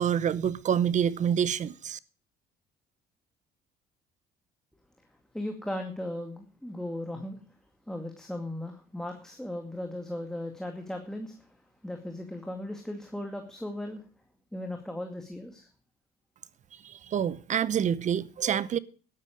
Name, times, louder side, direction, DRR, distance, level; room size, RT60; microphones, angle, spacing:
voice 1, 0.0-2.0 16.8-18.8, right 8 dB, 45° right, 0.8 m, -27 dB
voice 2, 5.3-7.4 7.9-14.1 14.5-15.7, left 1 dB, 5° left, 2.2 m, -37 dB
12.5 x 12.5 x 5.1 m
cardioid pair, 110°, 17 cm